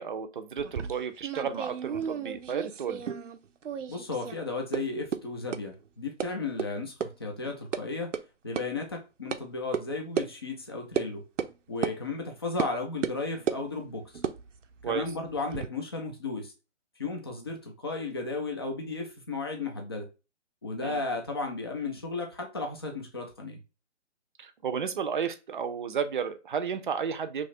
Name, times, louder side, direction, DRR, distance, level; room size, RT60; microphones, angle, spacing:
voice 1, 0.0-3.0 14.8-15.0 20.8-21.0 24.4-27.5, right 7 dB, 45° right, 0.5 m, -32 dB
sound 1, 0.6-3.4 3.6-4.4 4.7-4.8 5.1-5.2 5.5-5.6 6.2-6.3 6.6-6.7 7.0-7.1 7.4-7.8 8.1-8.2 8.6-8.7 9.3-9.4 9.7-9.8 10.2-10.3 11.0-11.1 11.4-11.5 11.8-12.0 12.6-12.7 13.0-13.6 14.1-15.7, right 7 dB, 90° right, 0.6 m, -33 dB
voice 2, 3.9-8.1 8.4-11.2 11.7-14.1 14.8-16.5 17.0-20.1 20.6-23.6, left 3 dB, 20° left, 0.4 m, -34 dB
3.0 x 2.4 x 4.2 m
hypercardioid pair, 150°, 36 cm